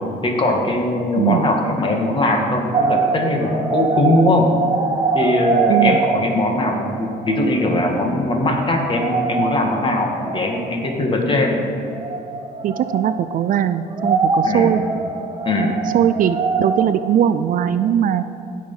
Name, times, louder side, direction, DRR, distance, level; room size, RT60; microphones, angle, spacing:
voice 1, 0.2-4.5 5.1-11.6 14.4-14.7 15.4-15.8, left 1 dB, 30° left, 2 dB, 1.9 m, -20 dB
sound 1, 2.7-8.1 8.4-8.5 8.8-11.1 11.9-13.6 13.9-17.9, right 4 dB, 25° right, 0.9 m, -23 dB
voice 2, 5.7-6.0 12.6-14.8 15.9-18.2, right 10 dB, 55° right, 12 dB, 0.4 m, -19 dB
16.5 x 6.4 x 5.5 m, 2.7 s
cardioid pair, 110°, 17 cm